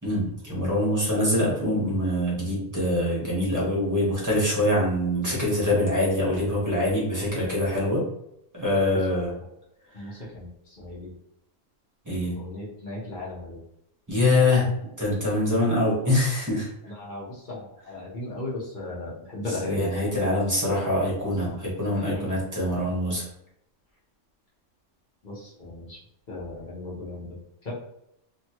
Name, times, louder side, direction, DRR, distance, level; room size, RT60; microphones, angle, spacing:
voice 1, 0.0-8.0 8.5-9.3 12.0-12.4 14.1-14.7 15.0-16.7 19.7-23.2, left 1 dB, 15° right, -6 dB, 1.2 m, -24 dB
voice 2, 9.9-11.1 12.3-13.7 16.0-16.1 16.8-19.9 22.1-22.2 25.2-26.0 26.3-27.7, left 2 dB, 40° left, -6 dB, 1.1 m, -37 dB
3.0 x 2.7 x 2.9 m, 0.79 s
omnidirectional pair, 1.3 m